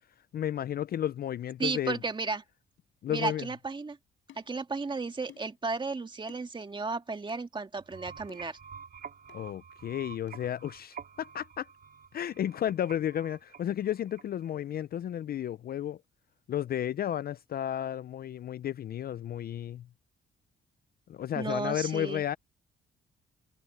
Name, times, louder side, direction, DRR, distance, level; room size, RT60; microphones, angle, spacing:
voice 1, 0.3-2.0 3.0-3.5 9.3-11.7 12.1-16.0 16.5-19.9 21.1-22.4, left 11 dB, 50° left, 0.5 m, -33 dB
voice 2, 1.6-2.4 3.1-4.0 4.4-8.6 21.4-22.2, right 4 dB, 25° right, 1.9 m, -34 dB
sound 1, 3.3-3.5 4.3-4.5 5.3-5.6 6.3-6.5 7.3-7.4 8.3-8.6 9.3-9.5 10.3-10.4, left 11 dB, 75° left, 4.8 m, -55 dB
sound 2, 7.8-14.6, right 7 dB, 50° right, 3.1 m, -49 dB
cardioid pair, 90°, 20 cm